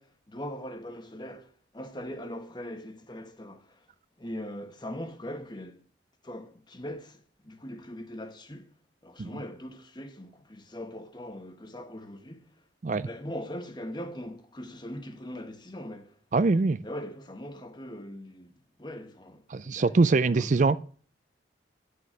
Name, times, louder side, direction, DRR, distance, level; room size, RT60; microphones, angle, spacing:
voice 1, 0.0-3.9 4.2-5.8 6.2-8.7 9.0-12.6 13.0-16.2 16.8-18.5 18.8-20.8, equal, 25° left, 1.2 m, -41 dB
voice 2, 16.3-16.8 19.5-20.8, right 3 dB, 40° right, 0.4 m, -23 dB
10.5 x 6.7 x 6.2 m
head